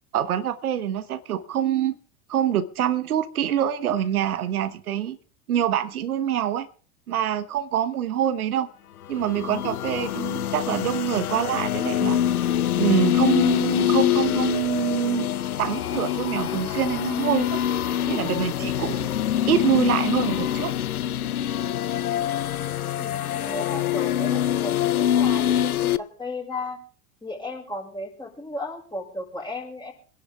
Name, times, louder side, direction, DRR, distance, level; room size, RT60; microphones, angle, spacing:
voice 1, 0.1-1.9 2.3-5.2 5.5-6.7 7.1-8.7 9.1-12.2 12.8-15.3 15.6-17.6 18.1-19.1 19.5-20.7, right 10 dB, 80° right, 1.1 m, -25 dB
sound 1, 9.1-26.0, left 11 dB, 90° left, 0.6 m, -25 dB
voice 2, 23.0-26.8 27.2-29.9, left 2 dB, 10° left, 5.8 m, -35 dB
24.5 x 11.0 x 3.5 m
hypercardioid pair, 85°, 43 cm